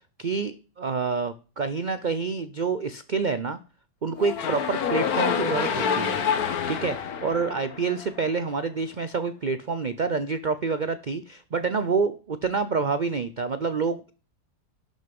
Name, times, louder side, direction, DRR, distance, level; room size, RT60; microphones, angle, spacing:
voice 1, 0.2-3.6 4.0-6.2 6.7-14.1, right 4 dB, 60° right, 12 dB, 0.4 m, -27 dB
sound 1, 4.2-8.4, left 7 dB, 65° left, 1.6 m, -27 dB
12.0 x 6.4 x 5.3 m, 0.36 s
omnidirectional pair, 1.8 m